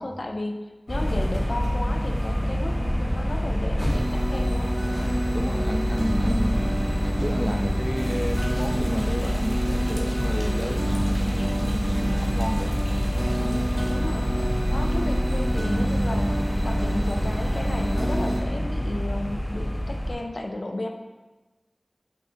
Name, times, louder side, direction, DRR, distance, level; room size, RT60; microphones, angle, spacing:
voice 1, 0.0-4.7 11.6-11.9 13.4-14.3 14.7-16.3 16.6-20.9, left 1 dB, 75° left, 3 dB, 0.3 m, -34 dB
sound 1, 0.9-20.1, equal, 45° left, 1.3 m, -26 dB
sound 2, 3.9-18.4, right 1 dB, 60° right, 0.6 m, -30 dB
voice 2, 5.3-6.7 7.0-12.8, equal, 5° right, 5 dB, 0.3 m, -31 dB
sound 3, 7.9-13.9, equal, 30° left, 1.0 m, -45 dB
5.8 x 2.8 x 2.5 m, 1.2 s
wide cardioid pair, 40°, 0 cm